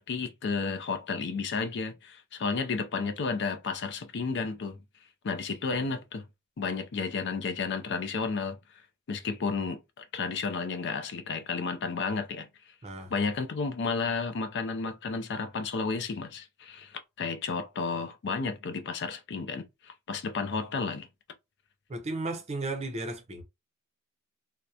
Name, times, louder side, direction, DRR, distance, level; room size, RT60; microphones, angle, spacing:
voice 1, 0.0-4.8 5.2-6.2 6.6-8.6 9.1-12.5 13.1-21.1, left 4 dB, 55° left, 0.4 m, -32 dB
voice 2, 21.9-23.4, right 2 dB, 30° right, 0.6 m, -34 dB
2.8 x 2.1 x 2.3 m
head